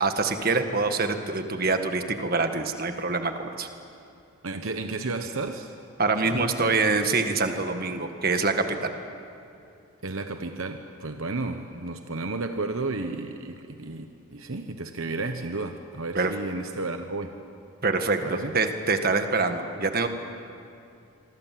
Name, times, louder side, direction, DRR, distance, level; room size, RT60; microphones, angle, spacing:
voice 1, 0.0-3.7 6.0-8.9 16.1-16.3 17.8-20.1, right 3 dB, 40° right, 6 dB, 1.6 m, -25 dB
voice 2, 4.4-5.8 6.2-6.8 10.0-17.4 18.2-18.6, right 3 dB, 65° right, 6 dB, 1.1 m, -33 dB
27.0 x 24.0 x 7.7 m, 2.6 s
head